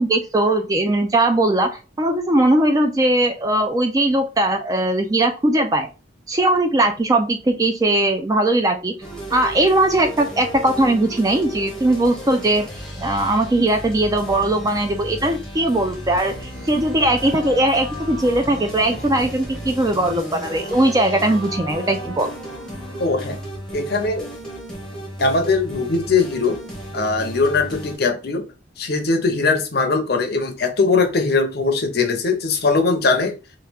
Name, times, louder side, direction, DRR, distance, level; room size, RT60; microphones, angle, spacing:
voice 1, 0.0-5.9 6.3-8.9 9.3-12.7 13.0-22.3, right 1 dB, 20° right, 0.3 m, -19 dB
sound 1, 9.0-28.0, right 1 dB, 5° left, 0.8 m, -34 dB
sound 2, 15.8-23.8, left 1 dB, 75° right, 1.4 m, -39 dB
voice 2, 23.0-23.4 23.7-24.3 25.2-26.6 26.9-28.5 28.8-33.4, left 4 dB, 55° left, 0.6 m, -20 dB
3.0 x 2.3 x 3.3 m
head